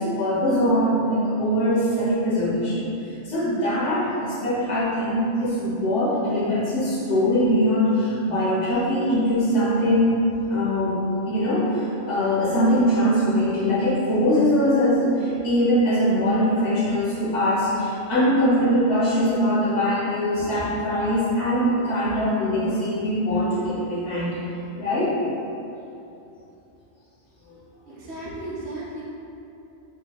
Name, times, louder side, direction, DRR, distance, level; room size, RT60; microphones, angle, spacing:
voice 1, 0.0-2.9 3.2-10.2 10.5-24.4 24.8-25.2 27.5-27.6, equal, 65° left, -8 dB, 1.2 m, -22 dB
voice 2, 27.9-29.0, right 1 dB, 65° right, -6 dB, 0.8 m, -34 dB
3.9 x 2.9 x 2.2 m, 2.8 s
omnidirectional pair, 1.3 m